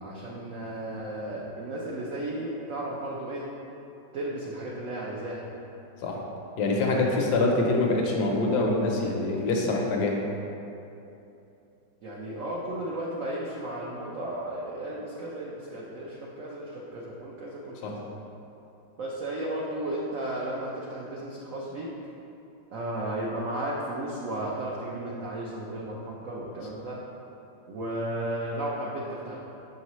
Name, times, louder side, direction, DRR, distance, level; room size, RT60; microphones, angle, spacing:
voice 1, 0.0-3.4 4.1-5.4 12.0-17.9 19.0-21.9 22.7-27.0 27.7-29.4, right 1 dB, 75° right, -4 dB, 0.7 m, -34 dB
voice 2, 6.6-10.2 17.8-18.0, left 2 dB, 70° left, 0 dB, 1.2 m, -25 dB
5.8 x 5.5 x 3.0 m, 2.9 s
omnidirectional pair, 2.1 m